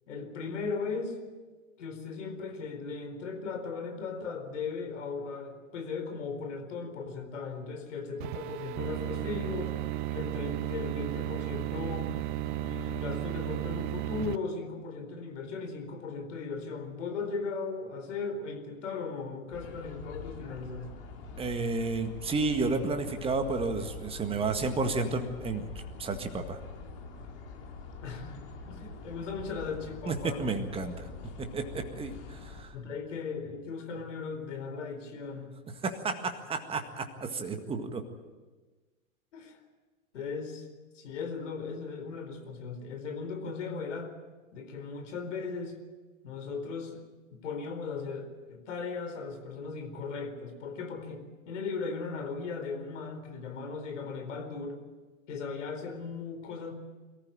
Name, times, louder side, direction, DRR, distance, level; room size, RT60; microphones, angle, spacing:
voice 1, 0.1-1.2 1.8-12.2 12.6-20.9 28.0-30.5 32.7-35.5 39.3-39.6 40.1-40.6 40.9-44.1 44.5-45.8 46.2-47.0 47.3-54.8 55.3-56.7, left 4 dB, 65° left, 7 dB, 4.3 m, -37 dB
sound 1, 8.2-14.4, right 14 dB, 40° right, 0.7 m, -34 dB
sound 2, 19.5-32.6, left 4 dB, 45° left, 4.7 m, -45 dB
voice 2, 21.4-25.7 26.0-26.6 30.1-31.1 31.4-32.7 35.8-38.0, right 3 dB, 15° right, 6 dB, 1.8 m, -31 dB
23.0 x 14.5 x 8.9 m, 1.3 s
figure-of-eight pair, 110°, 40 cm